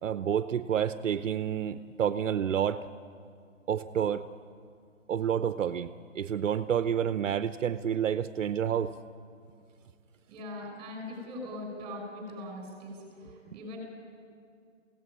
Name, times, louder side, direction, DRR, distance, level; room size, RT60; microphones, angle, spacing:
voice 1, 0.0-2.8 3.7-4.2 5.1-8.9 13.5-13.6, right 9 dB, 70° right, 12 dB, 0.8 m, -29 dB
voice 2, 10.3-13.8, left 1 dB, 15° right, 1 dB, 5.8 m, -41 dB
23.0 x 17.0 x 9.7 m, 2.3 s
hypercardioid pair, 170°, 39 cm